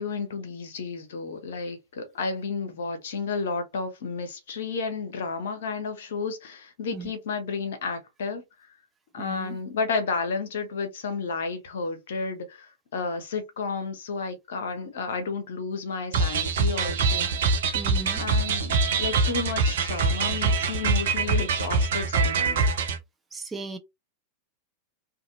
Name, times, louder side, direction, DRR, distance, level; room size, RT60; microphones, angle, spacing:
voice 1, 0.0-8.4 9.1-17.3 18.2-22.6, left 4 dB, 60° left, 0.9 m, -32 dB
voice 2, 9.2-9.6 17.7-18.3 23.3-23.8, right 3 dB, 15° right, 0.6 m, -37 dB
sound 1, 16.1-23.0, right 4 dB, 60° right, 0.6 m, -24 dB
2.6 x 2.6 x 2.6 m
figure-of-eight pair, 90°, 0 cm